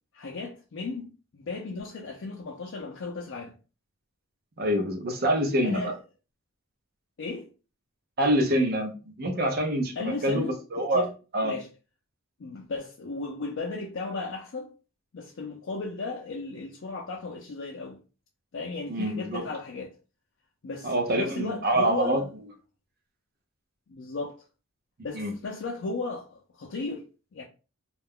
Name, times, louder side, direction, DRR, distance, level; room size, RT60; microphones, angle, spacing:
voice 1, 0.1-3.6 5.6-6.0 7.2-7.5 10.0-11.1 11.4-11.7 12.4-14.7 15.1-18.0 18.5-19.9 20.6-22.3 23.9-24.4 25.0-27.1 27.3-27.4, left 3 dB, 60° left, 0.4 m, -35 dB
voice 2, 4.6-5.9 8.2-8.9 9.2-11.1 11.3-11.5 18.9-19.4 20.8-22.2 25.1-25.3, right 1 dB, 45° right, 0.6 m, -25 dB
2.3 x 2.1 x 3.4 m
head